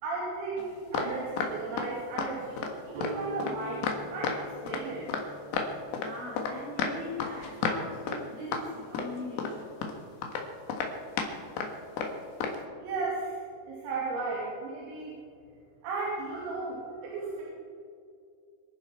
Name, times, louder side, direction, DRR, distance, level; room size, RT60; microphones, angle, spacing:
voice 1, 0.0-2.6 2.9-5.1 12.8-13.3 13.7-15.2 15.8-17.4, right 3 dB, 90° right, -6 dB, 5.6 m, -35 dB
sound 1, 0.6-1.1 1.4-1.9 2.2-2.3 2.6-2.7 3.0-4.4 4.7-5.2 5.5-6.5 6.8-7.8 8.1-8.2 8.5-8.6 8.9-9.5 9.8-9.9 10.2-10.4 10.7-11.3 11.6-11.7 12.0-12.1 12.4-12.6, left 5 dB, 65° left, 3.3 m, -31 dB
Guitar, 2.9-8.9, left 1 dB, 65° right, 2.7 m, -47 dB
voice 2, 5.9-9.7, left 2 dB, 50° right, -7 dB, 5.1 m, -40 dB
26.0 x 10.5 x 4.6 m, 2.3 s
omnidirectional pair, 5.9 m